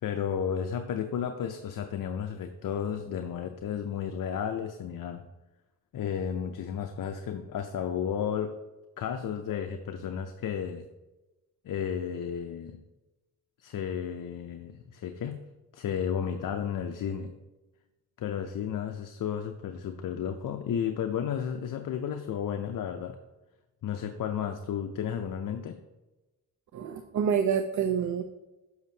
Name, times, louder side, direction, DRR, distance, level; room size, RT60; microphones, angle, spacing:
voice 1, 0.0-5.2 5.9-8.5 9.0-10.9 11.6-12.8 13.6-15.4 15.7-17.3 18.2-23.2 23.8-25.8, left 8 dB, 60° left, 6 dB, 0.6 m, -33 dB
voice 2, 26.7-28.2, right 7 dB, 50° right, 8 dB, 0.5 m, -27 dB
7.1 x 6.4 x 2.7 m, 1.1 s
cardioid pair, 85°, 37 cm